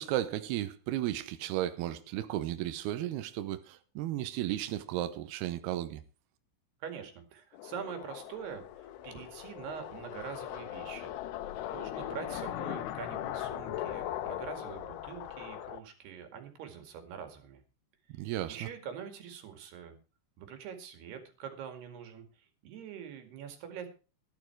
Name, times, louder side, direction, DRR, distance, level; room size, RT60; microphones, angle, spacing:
voice 1, 0.0-6.0 18.2-18.7, right 13 dB, 85° right, 2.2 m, -34 dB
voice 2, 6.8-11.2 11.7-17.6 18.2-20.0 20.4-23.9, right 7 dB, 60° right, 3.8 m, -44 dB
sound 1, 7.5-15.8, left 12 dB, 80° left, 2.5 m, -39 dB
14.0 x 11.0 x 4.6 m
omnidirectional pair, 5.7 m